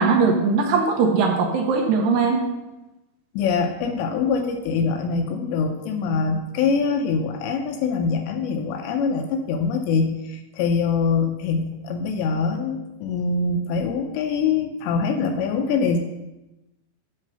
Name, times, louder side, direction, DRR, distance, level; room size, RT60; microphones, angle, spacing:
voice 1, 0.0-2.4, right 4 dB, 75° right, 1 dB, 2.6 m, -20 dB
voice 2, 3.3-16.0, left 5 dB, 85° left, 5 dB, 2.7 m, -24 dB
10.5 x 3.8 x 6.6 m, 1.0 s
omnidirectional pair, 5.4 m